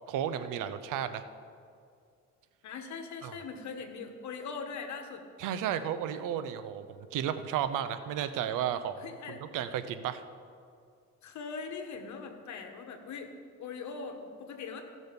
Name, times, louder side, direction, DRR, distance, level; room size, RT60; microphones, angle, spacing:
voice 1, 0.1-1.2 3.2-3.3 5.4-9.0 9.3-10.2, right 9 dB, 80° right, 12 dB, 0.7 m, -33 dB
voice 2, 2.6-5.2 9.0-9.4 11.2-13.3 13.6-14.8, left 5 dB, 65° left, 5 dB, 1.4 m, -41 dB
15.5 x 6.3 x 5.3 m, 2.3 s
cardioid pair, 105°, 31 cm